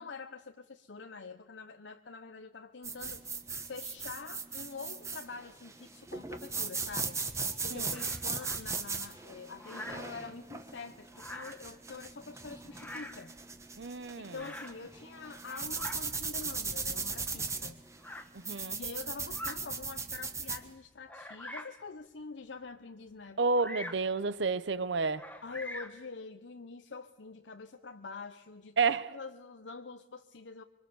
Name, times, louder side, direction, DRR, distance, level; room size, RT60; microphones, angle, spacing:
voice 1, 0.0-3.2 3.6-7.2 7.6-13.3 14.2-17.8 18.8-23.4 25.4-30.6, left 4 dB, 75° left, 0.8 m, -45 dB
sound 1, 2.8-20.6, right 4 dB, 15° right, 1.3 m, -38 dB
Bird vocalization bird call bird song, 7.9-8.6 9.6-10.1 11.1-11.7 12.7-13.3 14.4-14.8 15.3-16.0 16.9-17.0 18.0-18.3 19.2-19.6 20.2-20.3 21.1-21.8 23.6-24.1 25.2-26.0, left 1 dB, 5° left, 1.5 m, -44 dB
voice 2, 13.8-14.3 18.3-18.8 23.4-25.2 28.8-29.1, right 4 dB, 70° right, 0.8 m, -30 dB
25.0 x 24.5 x 7.0 m
head